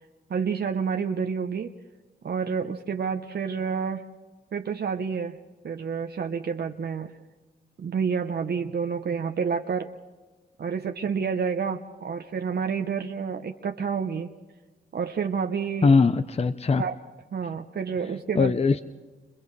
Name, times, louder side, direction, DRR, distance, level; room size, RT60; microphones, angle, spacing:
voice 1, 0.3-1.7 2.2-4.0 4.5-5.4 5.6-7.1 7.8-9.9 10.6-14.3 14.9-15.9 16.8-17.0 17.3-18.5, right 6 dB, 65° right, 5 dB, 0.9 m, -29 dB
voice 2, 15.8-16.8 18.3-18.8, left 4 dB, 35° left, 12 dB, 0.6 m, -20 dB
29.5 x 27.0 x 3.3 m, 1.3 s
cardioid pair, 60°, 18 cm